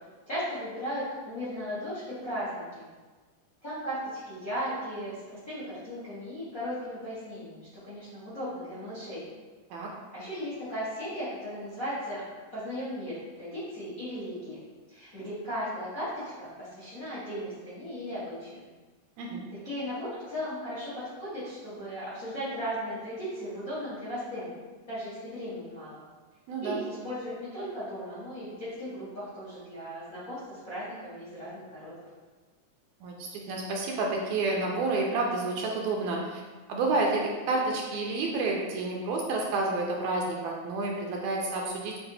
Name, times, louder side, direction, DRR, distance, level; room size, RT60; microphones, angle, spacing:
voice 1, 0.3-2.9 3.6-9.2 10.1-12.2 12.5-14.6 14.9-18.6 19.6-24.5 24.9-26.0 26.6-32.0, equal, 60° left, -12 dB, 0.9 m, -36 dB
voice 2, 26.5-26.8 33.0-36.4 36.7-42.0, right 3 dB, 80° right, -1 dB, 1.7 m, -29 dB
6.7 x 2.4 x 2.7 m, 1.3 s
omnidirectional pair, 3.4 m